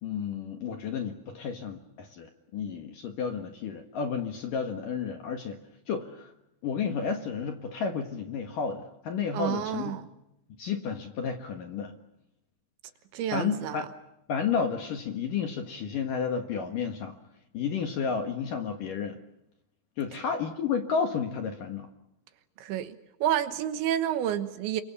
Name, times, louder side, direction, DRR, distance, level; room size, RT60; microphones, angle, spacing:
voice 1, 0.0-5.6 5.9-6.3 6.6-9.9 10.6-12.0 13.3-13.8 14.3-17.2 17.5-19.2 20.0-21.9, left 6 dB, 60° left, 6 dB, 2.5 m, -31 dB
voice 2, 9.3-10.1 13.1-13.9 22.6-24.8, right 11 dB, 75° right, 11 dB, 3.3 m, -30 dB
28.5 x 25.0 x 7.1 m, 0.86 s
omnidirectional pair, 5.7 m